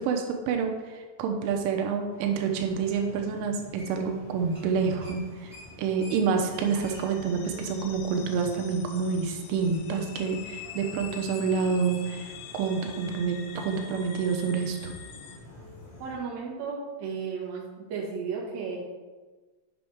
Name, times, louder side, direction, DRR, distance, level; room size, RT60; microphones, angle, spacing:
voice 1, 0.0-5.5 5.8-14.9, right 5 dB, 85° right, 4 dB, 3.2 m, -28 dB
sound 1, 2.1-16.2, left 1 dB, 50° left, 4.1 m, -49 dB
sound 2, 3.8-4.2 4.4-4.7 5.0-8.4 8.8-8.9 9.7-9.8, equal, 5° left, 0.4 m, -50 dB
sound 3, 6.5-15.4, left 9 dB, 85° left, 3.0 m, -45 dB
voice 2, 16.0-18.8, right 5 dB, 55° right, -4 dB, 2.1 m, -34 dB
9.4 x 6.1 x 3.5 m, 1.3 s
omnidirectional pair, 5.5 m